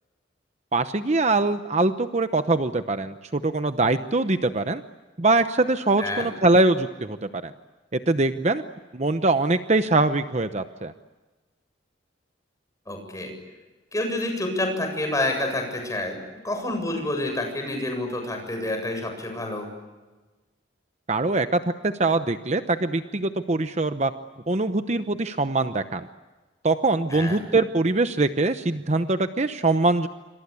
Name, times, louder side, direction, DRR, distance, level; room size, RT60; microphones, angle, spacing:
voice 1, 0.7-4.8 5.2-7.5 7.9-8.6 8.9-10.9 21.1-24.1 24.5-26.1 26.6-30.1, right 2 dB, 35° right, 9 dB, 0.9 m, -23 dB
voice 2, 6.0-6.3 12.9-13.3 13.9-16.2 16.4-19.7 27.1-27.4, left 1 dB, 20° left, 4 dB, 7.5 m, -28 dB
27.5 x 25.5 x 8.4 m, 1.2 s
head